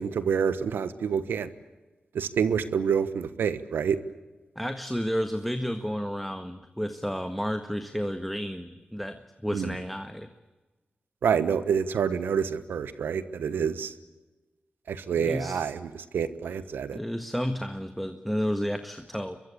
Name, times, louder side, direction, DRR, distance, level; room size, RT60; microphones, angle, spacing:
voice 1, 0.0-1.5 2.1-4.0 9.5-9.7 11.2-13.9 14.9-17.0, right 7 dB, 90° right, 13 dB, 1.3 m, -27 dB
voice 2, 4.5-10.3 15.2-15.6 16.9-19.4, equal, ahead, 7 dB, 1.6 m, -31 dB
24.0 x 22.5 x 8.5 m, 1.2 s
cardioid pair, 60°, 3 cm